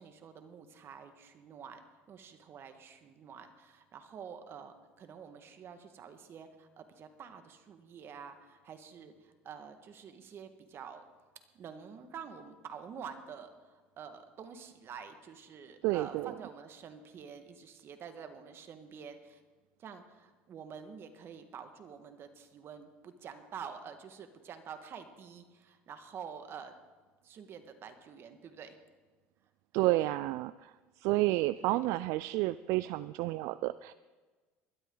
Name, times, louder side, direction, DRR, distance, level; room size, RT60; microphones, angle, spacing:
voice 1, 0.0-1.8 2.1-11.0 11.5-19.4 19.8-26.7 27.2-28.8 31.6-31.9, right 7 dB, 45° right, 8 dB, 1.7 m, -48 dB
voice 2, 15.8-16.3 29.7-30.7 31.0-33.9, right 18 dB, 70° right, 16 dB, 0.3 m, -30 dB
20.5 x 12.5 x 3.9 m, 1.3 s
supercardioid pair, 95°, 5 cm